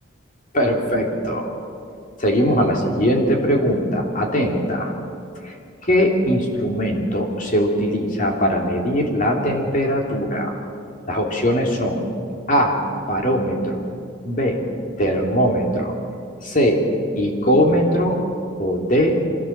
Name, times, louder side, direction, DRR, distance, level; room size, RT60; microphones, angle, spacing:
voice 1, 0.5-1.5 2.2-4.9 5.4-5.5 5.8-10.6 11.1-12.1 12.5-13.8 14.2-14.6 15.0-15.9 16.4-16.8 17.1-18.2 18.6-19.2, equal, 40° left, 1 dB, 3.0 m, -20 dB
25.0 x 17.0 x 7.4 m, 2.4 s
head